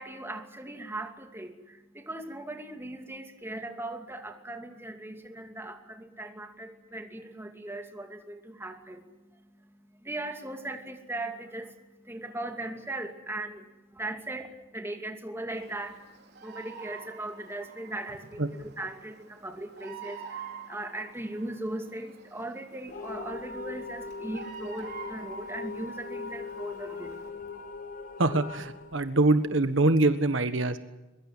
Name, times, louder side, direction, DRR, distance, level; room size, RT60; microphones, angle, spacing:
voice 1, 0.0-27.6, right 1 dB, 10° right, 4 dB, 2.6 m, -39 dB
Bird vocalization bird call bird song, 15.5-27.3, right 6 dB, 55° right, 4.3 m, -48 dB
sound 1, 22.9-29.8, left 3 dB, 40° left, 1.6 m, -40 dB
voice 2, 28.2-30.8, right 2 dB, 70° right, 10 dB, 1.5 m, -24 dB
23.0 x 23.0 x 7.4 m, 1.1 s
head